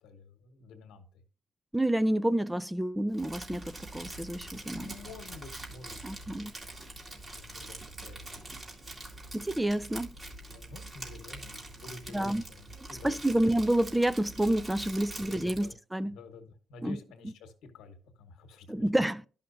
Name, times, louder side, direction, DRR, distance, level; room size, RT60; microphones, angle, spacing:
voice 1, 0.0-1.0 4.7-6.4 7.1-8.7 10.5-13.3 15.3-15.7 16.1-18.8, left 4 dB, 85° left, 1.1 m, -49 dB
voice 2, 1.7-4.9 6.0-6.5 9.3-10.1 12.1-12.4 13.0-16.2 16.8-17.0 18.7-19.2, right 1 dB, 10° right, 0.3 m, -29 dB
Crumpling crinkling, 3.1-15.7, right 2 dB, 35° right, 2.2 m, -44 dB
11.5 x 5.6 x 2.6 m
cardioid pair, 75°, 0 cm